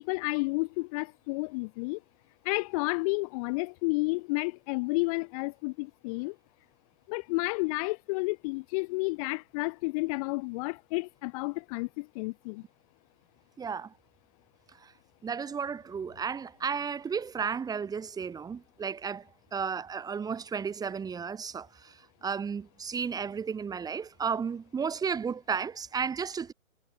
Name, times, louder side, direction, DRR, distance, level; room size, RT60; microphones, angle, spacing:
voice 1, 0.0-2.0 2.5-6.3 7.1-12.6, left 27 dB, 25° left, 1.6 m, -31 dB
voice 2, 13.6-13.9 14.8-14.9 15.2-19.2 19.5-21.9 22.2-26.5, right 6 dB, 10° right, 3.9 m, -33 dB
hypercardioid pair, 145°, 41 cm